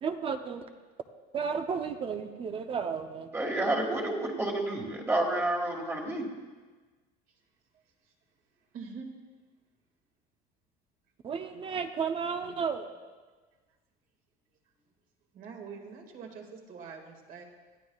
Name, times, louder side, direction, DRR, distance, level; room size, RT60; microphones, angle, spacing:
voice 1, 0.0-0.6 1.3-3.3 11.2-12.9, right 6 dB, 30° right, 7 dB, 0.7 m, -33 dB
voice 2, 3.3-6.2, right 1 dB, 15° right, 0 dB, 1.7 m, -29 dB
voice 3, 8.7-9.1 15.3-17.4, right 5 dB, 50° right, 3 dB, 2.1 m, -44 dB
22.0 x 13.5 x 2.4 m, 1.3 s
cardioid pair, 150°, 18 cm